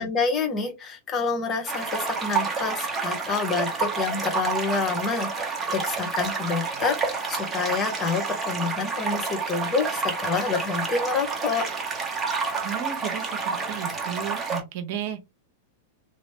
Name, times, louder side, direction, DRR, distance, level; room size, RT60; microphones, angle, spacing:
voice 1, 0.0-11.6, left 5 dB, 25° left, 1.1 m, -28 dB
sound 1, 1.7-14.6, right 5 dB, 20° right, 1.1 m, -29 dB
voice 2, 12.6-15.2, right 9 dB, 55° right, 0.9 m, -34 dB
3.1 x 3.0 x 2.8 m
figure-of-eight pair, 95°, 0 cm